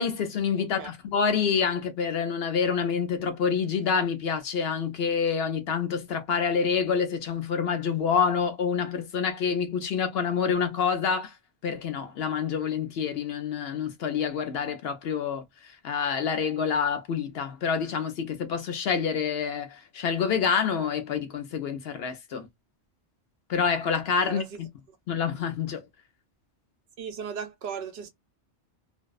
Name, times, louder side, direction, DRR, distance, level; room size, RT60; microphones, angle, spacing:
voice 1, 0.0-11.3 11.6-22.5 23.5-24.7 25.1-25.8, left 6 dB, 65° left, 0.8 m, -27 dB
voice 2, 0.6-0.9 24.2-24.5 27.0-28.1, right 7 dB, 65° right, 0.8 m, -36 dB
2.5 x 2.1 x 2.2 m
omnidirectional pair, 1.2 m